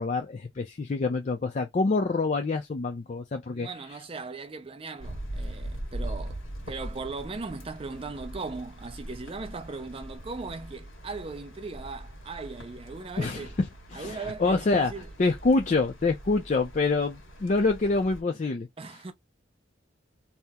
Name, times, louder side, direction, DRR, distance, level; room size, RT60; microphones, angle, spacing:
voice 1, 0.0-3.7 13.2-13.5 13.9-14.9 15.2-18.7, left 3 dB, 40° left, 0.4 m, -26 dB
voice 2, 3.5-6.4 6.7-13.5 13.9-15.1 18.8-19.1, right 3 dB, 30° right, 0.4 m, -38 dB
sound 1, 5.0-18.2, right 1 dB, 90° left, 1.3 m, -41 dB
2.8 x 2.0 x 3.5 m
head